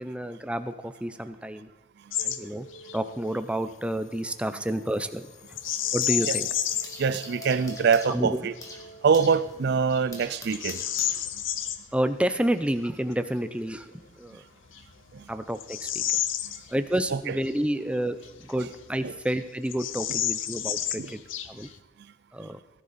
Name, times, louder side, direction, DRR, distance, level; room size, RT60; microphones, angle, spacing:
voice 1, 0.0-1.7 2.2-2.7 2.9-5.3 5.9-6.5 8.1-8.4 11.9-14.4 15.3-16.0 16.7-21.2 21.5-21.7 22.3-22.6, right 1 dB, 5° right, 0.6 m, -29 dB
Bird vocalization bird call bird song, 2.1-2.4 2.7-3.0 5.5-7.0 7.6-7.7 8.3-8.7 9.3-9.4 9.9-11.8 13.9-14.0 14.7-17.1 17.4-17.5 18.2-19.0 19.3-19.4 19.7-21.8, left 11 dB, 70° left, 0.8 m, -30 dB
sound 1, 2.2-10.1, left 1 dB, 35° left, 0.8 m, -47 dB
sound 2, 4.2-6.4 6.6-11.7, left 1 dB, 15° left, 1.7 m, -46 dB
voice 2, 7.0-8.5 9.0-10.8 15.1-15.3 17.1-17.4 19.0-19.1 21.0-21.1, right 6 dB, 55° right, 0.4 m, -24 dB
17.5 x 10.5 x 4.2 m
head